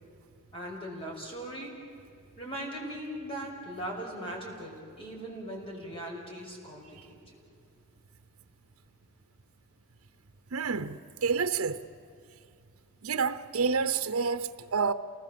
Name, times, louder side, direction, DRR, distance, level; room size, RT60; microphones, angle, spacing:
voice 1, 0.5-1.7 2.4-7.2, right 1 dB, 25° left, 5.9 m, -39 dB
voice 2, 10.5-11.9 13.0-14.9, right 5 dB, 75° right, 0.7 m, -29 dB
28.5 x 20.0 x 7.5 m
head